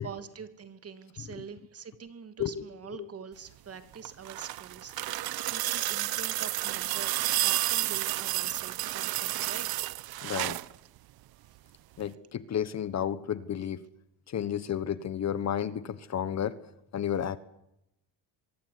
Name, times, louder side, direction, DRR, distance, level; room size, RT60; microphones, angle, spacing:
voice 1, 0.0-9.7 11.4-11.6 12.0-12.1, right 6 dB, 30° right, 11 dB, 2.8 m, -45 dB
sound 1, 3.9-10.7 12.0-12.1, right 16 dB, 55° right, 1.0 m, -31 dB
voice 2, 10.2-10.6 12.0-13.8 14.3-16.6 16.9-17.4, left 9 dB, 35° left, 16 dB, 1.4 m, -32 dB
24.0 x 23.0 x 9.5 m, 0.85 s
cardioid pair, 130°, 44 cm